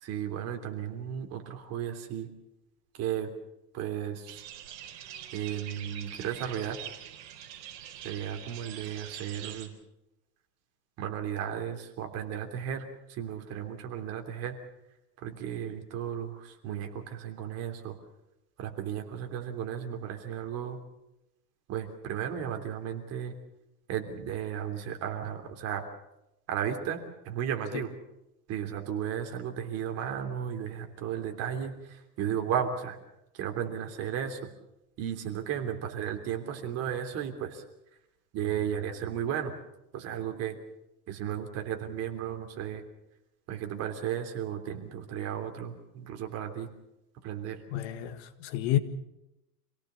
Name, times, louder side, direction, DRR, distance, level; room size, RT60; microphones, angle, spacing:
voice 1, 0.0-2.3 2.9-3.3 3.7-4.4 5.3-6.8 8.0-9.7 11.0-14.6 15.2-18.0 18.6-20.8 21.7-23.4 23.9-25.8 26.5-27.9 28.5-33.0 33.3-34.4 35.0-37.6 38.3-39.5 39.9-40.6 41.1-42.8 43.5-46.7 47.2-47.6, right 9 dB, 30° right, 3.3 m, -34 dB
sound 1, 4.3-9.7, right 10 dB, 45° right, 4.1 m, -44 dB
voice 2, 47.7-48.8, left 13 dB, 45° left, 1.7 m, -30 dB
27.5 x 18.0 x 7.0 m
supercardioid pair, 155°, 47 cm